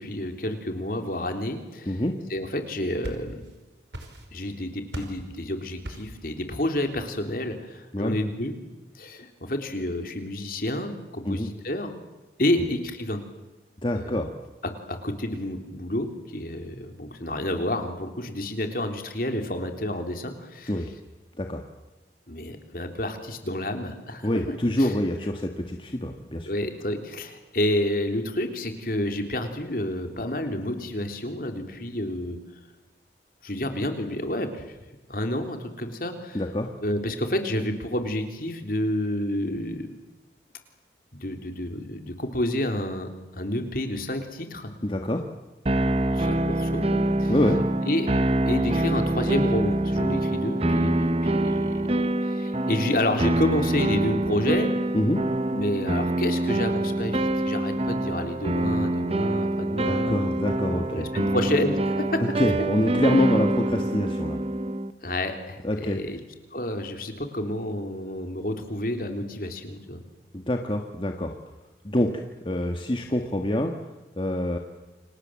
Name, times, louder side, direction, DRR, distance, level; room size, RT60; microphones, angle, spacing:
voice 1, 0.0-2.0 2.3-3.3 4.3-8.5 8.9-11.9 12.4-13.2 14.0-14.2 14.6-20.7 22.3-24.3 24.8-24.9 26.5-32.4 33.4-34.6 35.1-36.4 36.8-39.9 41.1-44.7 46.1-47.3 47.8-48.1 48.5-51.7 52.2-54.7 55.5-62.2 65.0-66.2 66.5-70.0, left 1 dB, 50° left, 6 dB, 3.5 m, -29 dB
sound 1, 2.6-3.6 3.9-4.5 4.9-5.3 5.8-6.2, right 1 dB, 85° right, 5.0 m, -38 dB
voice 2, 13.8-14.3 20.7-20.9 21.4-21.6 24.2-26.5 36.3-36.7 44.8-45.2 47.3-47.6 54.9-55.2 59.8-61.1 62.2-64.4 65.6-66.0 70.3-71.3 71.8-73.7 74.2-74.6, left 1 dB, 30° left, 4 dB, 1.6 m, -26 dB
sound 2, 45.7-64.9, right 1 dB, 35° right, 0.9 m, -25 dB
29.5 x 26.0 x 7.6 m, 1.1 s
head